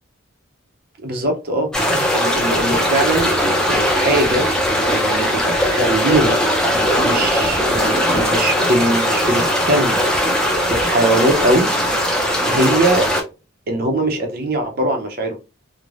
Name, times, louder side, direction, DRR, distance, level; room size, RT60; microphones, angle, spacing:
voice 1, 1.0-1.7 2.1-3.3 3.7-4.5 4.9-6.4 7.0-10.0 10.7-11.7 12.5-13.1 13.7-15.4, right 1 dB, 45° right, 0.5 m, -20 dB
sound 1, 1.7-13.2, equal, 5° left, 0.4 m, -19 dB
3.1 x 2.0 x 2.4 m
head